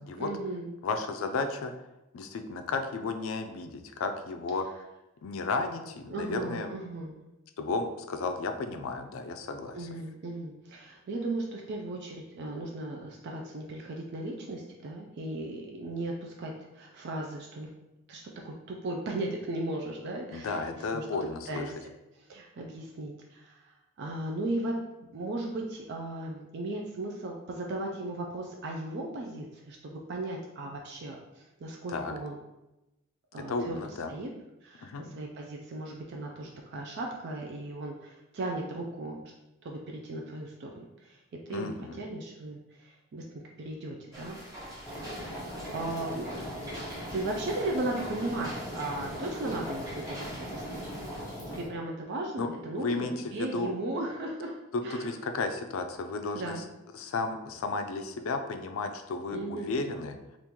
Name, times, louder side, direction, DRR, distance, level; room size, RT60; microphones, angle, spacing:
voice 1, 0.2-0.8 6.1-7.2 9.7-17.7 18.1-21.1 21.5-21.7 22.2-24.7 25.1-32.4 33.3-34.3 34.6-39.2 39.6-41.2 41.5-43.2 43.6-45.4 45.7-46.8 47.1-50.8 51.5-54.6 54.8-55.1 56.3-56.7 59.3-59.8, right 2 dB, 55° right, 0 dB, 0.4 m, -36 dB
voice 2, 0.8-1.7 2.1-4.7 5.2-6.7 7.6-9.9 20.3-21.6 31.9-32.1 33.5-34.1 34.8-35.1 41.5-42.0 52.4-52.5 52.8-53.7 54.7-56.6 56.9-60.2, left 3 dB, 70° left, 7 dB, 0.4 m, -33 dB
Queen Street Mill line shafts and belts running, 44.1-51.2, equal, 15° right, 0.9 m, -45 dB
sound 1, 44.8-51.7, equal, 15° left, 1.2 m, -39 dB
2.9 x 2.5 x 3.6 m, 0.97 s
head